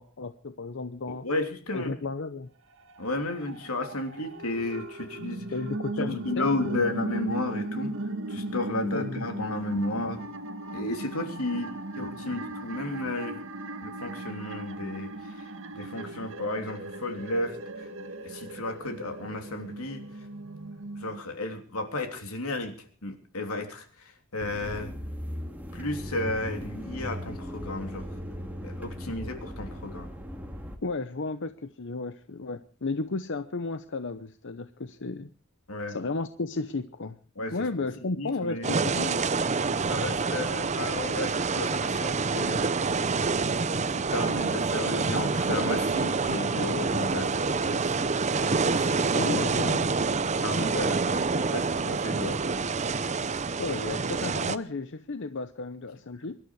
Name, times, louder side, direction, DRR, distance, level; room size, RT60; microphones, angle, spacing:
voice 1, 0.0-1.3 1.7-2.5 5.5-6.9 8.9-9.2 30.8-35.3 35.9-37.2 37.5-39.2 49.1-49.9 53.6-56.4, left 3 dB, 60° left, 10 dB, 0.8 m, -33 dB
voice 2, 1.1-1.9 3.0-5.4 6.0-7.9 8.3-10.2 10.7-13.4 13.8-15.5 15.7-17.9 18.1-20.0 20.9-22.7 23.0-24.9 25.7-28.0 28.6-30.1 35.7-36.0 37.4-37.6 38.2-38.8 39.8-42.7 44.0-47.9 48.5-48.9 50.4-52.6, left 2 dB, 85° left, 5 dB, 3.2 m, -33 dB
sound 1, 2.7-21.2, right 2 dB, 65° right, 1.9 m, -37 dB
sound 2, 24.4-30.8, equal, 10° right, 2.3 m, -38 dB
sound 3, 38.6-54.6, right 4 dB, 35° right, 0.7 m, -27 dB
24.0 x 12.5 x 4.8 m, 0.41 s
head